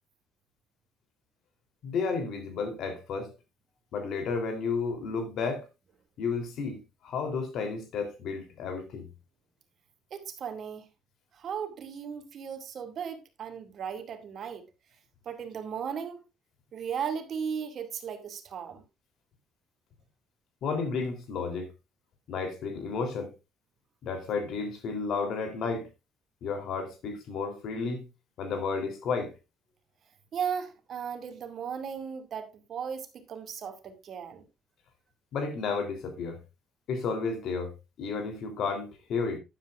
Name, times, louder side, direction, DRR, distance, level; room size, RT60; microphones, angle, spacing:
voice 1, 1.8-3.3 3.9-5.6 6.2-9.1 20.6-21.7 22.3-23.3 24.0-25.9 26.4-28.1 28.4-29.3 35.3-36.4 36.9-39.4, left 4 dB, 65° left, 3.4 m, -32 dB
voice 2, 10.1-10.9 11.3-14.7 15.3-16.2 16.7-18.8 30.3-34.4, right 7 dB, 50° right, 2.3 m, -36 dB
12.5 x 10.5 x 2.5 m
cardioid pair, 120°, 0 cm